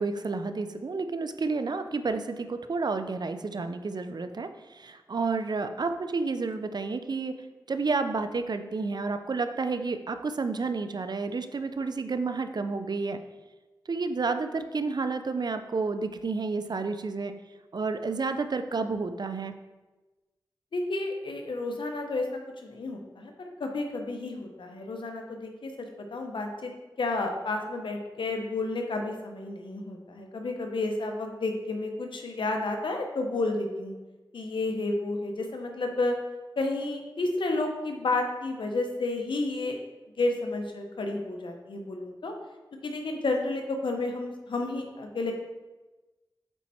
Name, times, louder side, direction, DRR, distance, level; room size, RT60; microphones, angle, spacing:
voice 1, 0.0-7.4 7.7-13.2 13.9-17.3 17.7-19.5, right 4 dB, 55° right, 9 dB, 0.6 m, -30 dB
voice 2, 20.7-22.3 22.6-26.7 27.0-33.9 34.3-36.2 36.6-39.8 40.2-42.3 42.8-45.3, left 2 dB, 80° left, 3 dB, 1.0 m, -31 dB
8.0 x 4.3 x 4.3 m, 1.2 s
cardioid pair, 50°, 8 cm